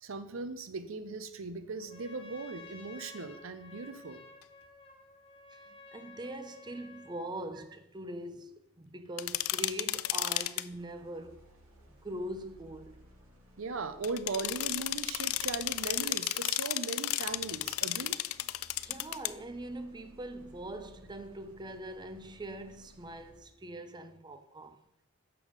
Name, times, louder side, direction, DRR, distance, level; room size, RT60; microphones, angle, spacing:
voice 1, 0.0-4.2 13.6-18.2, right 4 dB, 70° right, 0.7 m, -38 dB
Trumpet, 1.8-7.3, left 3 dB, 25° left, 0.9 m, -53 dB
voice 2, 5.5-11.4 12.0-13.0 18.8-24.8, right 1 dB, 20° right, 0.6 m, -42 dB
sound 1, 9.2-10.6 14.0-19.3, left 16 dB, 85° left, 0.3 m, -33 dB
sound 2, 10.7-16.3 17.2-23.6, equal, 90° right, 2.4 m, -59 dB
6.9 x 5.4 x 4.9 m
head